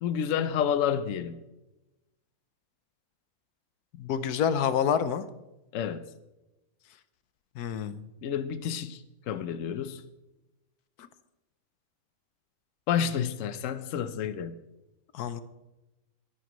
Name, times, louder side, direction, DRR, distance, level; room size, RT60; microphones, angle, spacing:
voice 1, 0.0-1.4 5.7-6.1 8.2-10.0 12.9-14.6, left 8 dB, 60° left, 1.0 m, -30 dB
voice 2, 4.0-5.2 7.6-8.1 15.1-15.4, left 8 dB, 85° left, 1.3 m, -27 dB
21.5 x 11.0 x 3.1 m
omnidirectional pair, 1.6 m